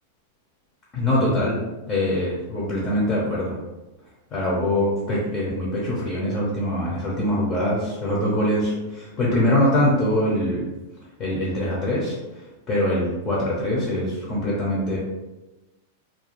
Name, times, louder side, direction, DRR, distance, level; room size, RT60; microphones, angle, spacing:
voice 1, 0.9-1.6 1.9-3.6 4.3-10.7 11.2-15.0, left 1 dB, 20° left, -5 dB, 0.5 m, -23 dB
2.4 x 2.2 x 2.9 m, 1.1 s
supercardioid pair, 170°, 0 cm